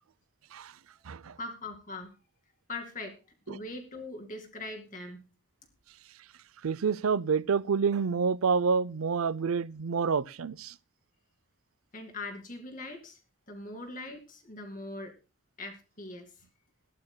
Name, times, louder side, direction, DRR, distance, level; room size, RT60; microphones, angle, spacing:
voice 1, 1.4-2.1 2.7-3.2 3.5-5.3 11.9-13.2 13.5-15.1 15.6-16.3, left 2 dB, 40° left, 2.4 m, -41 dB
voice 2, 6.6-10.7, right 5 dB, 90° right, 0.5 m, -28 dB
20.5 x 14.0 x 2.2 m
head